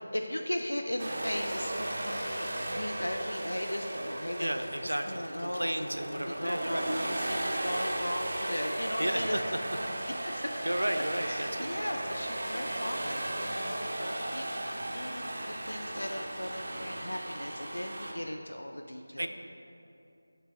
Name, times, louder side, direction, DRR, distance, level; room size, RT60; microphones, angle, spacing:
voice 1, 0.1-2.5 2.7-4.5 4.8-9.4 10.1-10.6 11.3-19.3, left 1 dB, 85° left, 3 dB, 0.4 m, -37 dB
sound 1, 1.0-18.1, right 1 dB, 50° right, 0.7 m, -36 dB
voice 2, 4.4-6.9 9.0-9.6 10.6-11.9 19.2-19.3, right 1 dB, 85° right, 7 dB, 0.5 m, -33 dB
7.2 x 3.4 x 5.3 m, 2.7 s
figure-of-eight pair, 165°, 0 cm